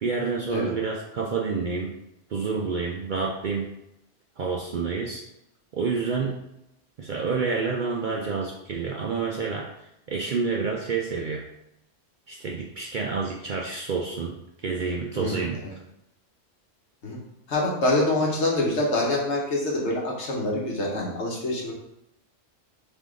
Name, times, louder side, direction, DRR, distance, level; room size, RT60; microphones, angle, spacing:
voice 1, 0.0-1.9 2.3-3.7 4.4-5.2 5.7-6.4 7.0-11.4 12.3-15.6, right 4 dB, 60° right, -1 dB, 0.5 m, -28 dB
voice 2, 15.1-15.8 17.0-17.2 17.5-21.7, left 2 dB, 70° left, -3 dB, 1.4 m, -26 dB
3.6 x 3.6 x 3.7 m, 0.83 s
omnidirectional pair, 1.3 m